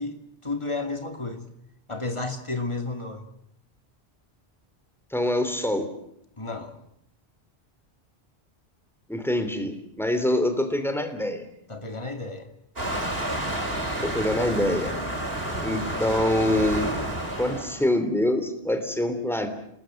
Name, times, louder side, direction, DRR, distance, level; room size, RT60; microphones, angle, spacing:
voice 1, 0.0-1.5 1.9-3.3 6.4-6.7 11.7-12.5, left 3 dB, 25° left, 6 dB, 2.5 m, -32 dB
voice 2, 5.1-5.9 9.1-11.5 14.0-14.9 15.6-17.0 17.4-19.5, left 1 dB, ahead, 7 dB, 3.2 m, -25 dB
Waves surf, 12.8-17.8, right 1 dB, 60° right, 5.7 m, -30 dB
28.0 x 20.5 x 7.7 m, 0.72 s
omnidirectional pair, 1.1 m